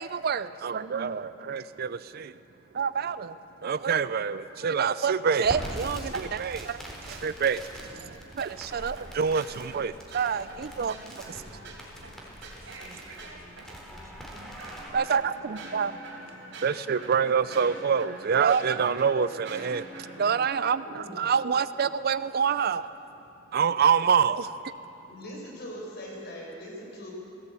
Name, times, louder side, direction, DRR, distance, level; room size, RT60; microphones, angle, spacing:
voice 1, 0.0-2.3 2.7-11.2 11.5-11.6 14.9-15.9 16.6-22.9 23.5-24.5, right 6 dB, 50° right, 0.4 m, -27 dB
Crackle, 5.4-14.9, equal, 5° left, 3.9 m, -43 dB
voice 2, 5.8-6.2 10.7-10.9 20.0-21.2 25.1-27.1, equal, 55° left, 6.0 m, -42 dB
sound 1, 8.6-13.8 14.4-20.4, right 2 dB, 65° right, 4.0 m, -45 dB
voice 3, 9.0-9.6 9.8-11.7 12.7-14.7, equal, 15° right, 3.0 m, -56 dB
18.5 x 17.0 x 8.4 m
head